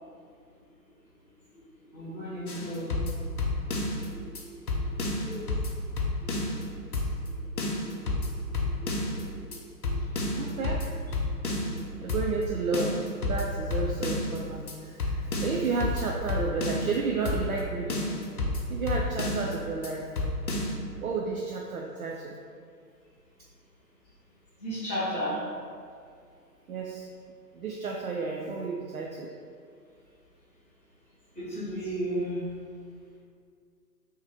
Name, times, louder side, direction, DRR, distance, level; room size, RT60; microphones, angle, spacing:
voice 1, 1.9-3.2 3.8-4.9 5.2-5.5 6.2-6.3 7.0-7.1 7.5-10.6 10.9-11.0 11.6-11.8 12.1-12.3 24.6-25.4 31.3-32.4, equal, 10° left, -17 dB, 0.6 m, -37 dB
sound 1, 2.5-4.1 4.4-4.5 4.7-6.6 6.9-7.3 7.6-9.2 9.5-9.6 9.8-11.8 12.1-12.5 12.7-14.4 14.7-14.8 15.0-17.0 17.3-17.6 17.9-19.6 19.8-19.9 20.2-20.7, left 2 dB, 60° left, 0.9 m, -30 dB
voice 2, 10.3-10.9 12.0-18.1 18.7-20.1 21.0-22.4 26.7-27.1 27.5-29.3, right 4 dB, 60° right, -1 dB, 0.5 m, -32 dB
3.6 x 2.8 x 4.4 m, 2.2 s
figure-of-eight pair, 135°, 50 cm